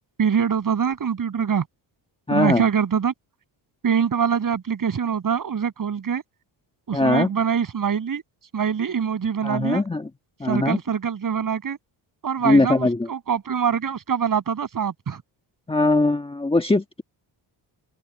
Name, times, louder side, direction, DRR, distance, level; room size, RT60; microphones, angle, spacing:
voice 1, 0.2-1.6 2.3-3.1 3.8-6.2 6.9-8.2 8.5-9.8 10.4-11.8 12.2-15.2, right 7 dB, 45° right, 7.7 m, -24 dB
voice 2, 2.3-2.6 6.9-7.3 9.4-10.1 10.4-10.8 12.4-13.1 15.7-17.0, left 2 dB, 10° left, 1.5 m, -20 dB
open air
cardioid pair, 140°, 45 cm